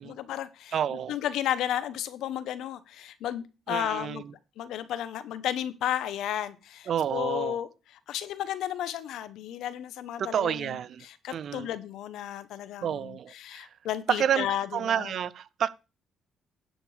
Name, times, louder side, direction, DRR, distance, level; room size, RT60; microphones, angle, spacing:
voice 1, 0.0-4.2 4.6-7.7 8.1-15.1, left 11 dB, 85° left, 0.9 m, -33 dB
voice 2, 0.7-1.2 3.7-4.3 6.9-7.6 10.2-11.1 11.3-11.7 12.8-13.7 14.1-15.7, right 9 dB, 65° right, 0.5 m, -29 dB
10.0 x 6.7 x 4.9 m
cardioid pair, 90°, 0 cm